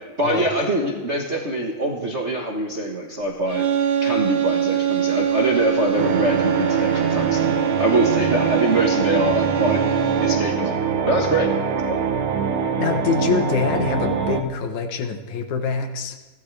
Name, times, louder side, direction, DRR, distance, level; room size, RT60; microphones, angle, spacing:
voice 1, 0.2-3.7 4.0-12.0, right 1 dB, 40° right, -1 dB, 1.0 m, -24 dB
sound 1, 3.5-10.6, right 8 dB, 65° right, 2.2 m, -23 dB
sound 2, 6.0-14.4, right 6 dB, 85° right, 2.6 m, -24 dB
voice 2, 12.8-16.2, left 6 dB, 80° left, 6 dB, 2.6 m, -25 dB
30.0 x 12.0 x 3.4 m, 1.3 s
omnidirectional pair, 3.3 m